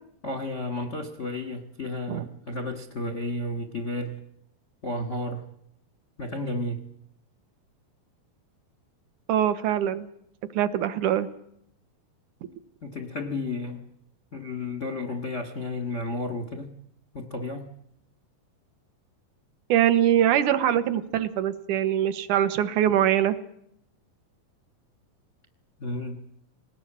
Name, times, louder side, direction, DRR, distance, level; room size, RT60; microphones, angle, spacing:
voice 1, 0.2-4.2 4.8-5.4 6.2-6.9 12.8-13.8 14.3-16.8 17.1-17.8 25.8-26.2, left 2 dB, 40° left, 8 dB, 1.0 m, -32 dB
voice 2, 9.3-10.1 10.5-11.3 19.7-23.3, right 11 dB, 65° right, 12 dB, 2.5 m, -23 dB
21.0 x 19.0 x 8.7 m, 0.73 s
omnidirectional pair, 4.1 m